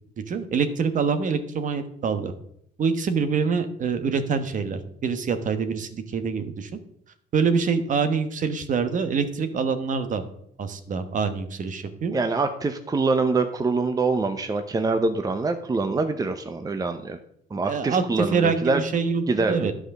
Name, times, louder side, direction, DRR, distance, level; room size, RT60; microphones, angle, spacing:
voice 1, 0.2-2.3 2.8-6.7 7.3-10.2 10.6-12.1 17.6-19.7, right 5 dB, 50° right, 10 dB, 1.2 m, -25 dB
voice 2, 12.1-17.2 17.5-18.8 19.3-19.7, right 3 dB, 20° right, 8 dB, 0.8 m, -25 dB
11.0 x 5.0 x 6.5 m, 0.72 s
cardioid pair, 95°, 17 cm